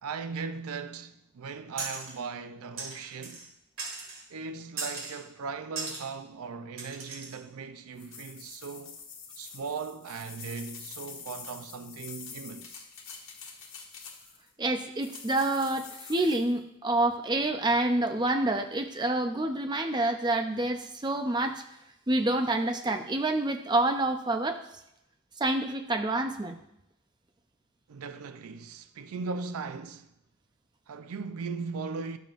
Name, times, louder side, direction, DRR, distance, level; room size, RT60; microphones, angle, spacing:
voice 1, 0.0-3.5 4.3-9.0 9.4-12.9 27.9-30.1 30.9-32.2, right 5 dB, 85° right, 0.4 m, -38 dB
sound 1, 1.8-2.2 2.8-3.5 3.8-4.2 4.8-5.2 5.8-6.0 6.8-7.4, right 3 dB, 65° right, 2.0 m, -38 dB
sound 2, 8.0-14.5 15.0-16.5, left 6 dB, 65° left, 1.4 m, -46 dB
voice 2, 14.6-21.6 22.1-24.6 25.4-26.6, right 2 dB, 20° right, 0.5 m, -27 dB
11.5 x 6.9 x 2.5 m
head